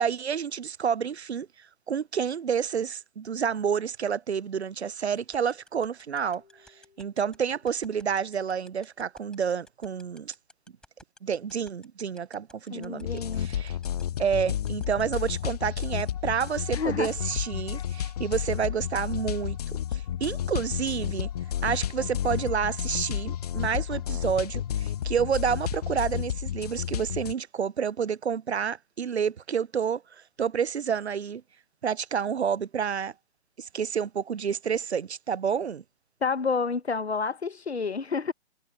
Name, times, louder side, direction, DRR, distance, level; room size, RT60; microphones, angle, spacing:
voice 1, 0.0-1.5 1.9-6.4 7.0-10.3 11.2-13.8 14.2-21.3 21.6-30.0 30.4-31.4 31.8-33.1 33.6-35.8, right 7 dB, 85° right, 0.5 m, -29 dB
sound 1, 5.2-16.0, left 1 dB, ahead, 3.7 m, -52 dB
Keyboard (musical), 6.4-9.6, left 5 dB, 60° left, 5.8 m, -67 dB
voice 2, 12.7-13.5 16.7-17.1 17.7-17.8 36.2-38.3, left 5 dB, 80° left, 1.2 m, -29 dB
sound 2, 13.0-27.3, left 10 dB, 40° left, 0.5 m, -31 dB
figure-of-eight pair, 130°, 32 cm